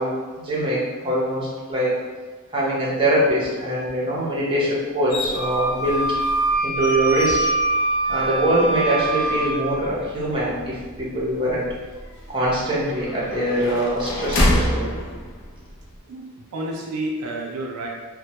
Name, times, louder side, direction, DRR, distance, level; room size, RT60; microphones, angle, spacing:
voice 1, 0.0-2.0 2.5-6.0 6.6-7.4 8.1-11.7 12.3-14.9, right 1 dB, 25° right, -7 dB, 0.6 m, -23 dB
sound 1, 5.1-16.0, left 1 dB, 55° left, 0.4 m, -29 dB
Wind instrument woodwind instrument, 5.3-9.6, right 2 dB, 40° left, 0.8 m, -23 dB
voice 2, 16.1-17.9, right 1 dB, 80° right, -1 dB, 0.4 m, -30 dB
2.1 x 2.1 x 2.8 m, 1.3 s
head